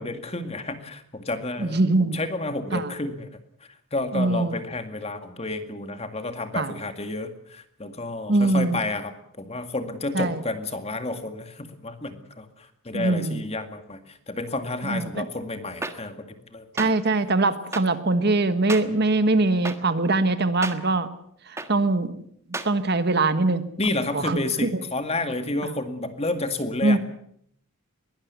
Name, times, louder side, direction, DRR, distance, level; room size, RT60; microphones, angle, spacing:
voice 1, 0.0-3.3 3.9-16.9 23.8-27.0, left 2 dB, 30° left, 8 dB, 2.1 m, -31 dB
voice 2, 1.6-2.2 2.7-2.9 4.1-4.6 6.5-6.7 8.3-8.8 10.1-10.4 12.9-13.4 14.8-15.2 16.7-21.1 21.5-22.2 22.5-23.6 24.1-24.8 25.6-25.7 26.8-27.0, right 2 dB, 50° right, 11 dB, 1.4 m, -22 dB
sound 1, 15.8-15.9 16.8-16.9 17.7-17.8 18.7-18.8 19.6-19.8 20.6-20.7 21.6-21.7 22.5-22.7, right 2 dB, 15° right, 1.5 m, -30 dB
22.0 x 17.5 x 8.3 m, 0.68 s
head